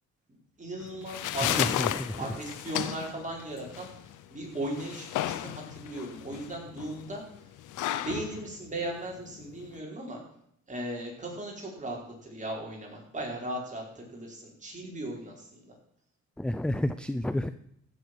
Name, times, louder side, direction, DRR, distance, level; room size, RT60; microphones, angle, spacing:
voice 1, 0.6-1.9 2.2-7.2 8.0-10.2 10.7-15.7, right 1 dB, 25° right, -2 dB, 4.9 m, -37 dB
sound 1, 0.8-9.8, left 13 dB, 85° left, 0.7 m, -34 dB
voice 2, 1.4-2.3 16.4-17.5, left 1 dB, 5° left, 12 dB, 0.5 m, -30 dB
15.0 x 7.0 x 6.2 m, 0.70 s
cardioid pair, 90°, 30 cm